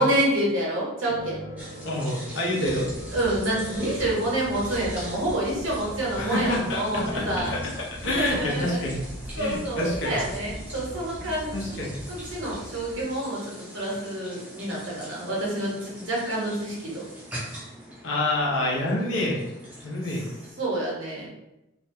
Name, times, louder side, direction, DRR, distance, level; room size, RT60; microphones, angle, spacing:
voice 1, 0.0-1.4 2.6-2.8 3.1-7.5 8.0-8.8 9.3-11.6 12.1-17.0 20.6-21.3, right 1 dB, 85° right, -5 dB, 1.0 m, -28 dB
sound 1, 1.1-7.6, equal, 50° right, 0.7 m, -41 dB
sound 2, 1.6-20.5, right 1 dB, 10° right, 0.4 m, -43 dB
voice 2, 1.8-2.9 6.2-9.1 9.4-10.2 11.5-12.0 18.0-19.4 19.8-20.3, left 1 dB, 70° left, -4 dB, 0.7 m, -27 dB
sound 3, 2.6-13.0, equal, 25° left, 0.9 m, -40 dB
2.5 x 2.2 x 2.6 m, 0.93 s
head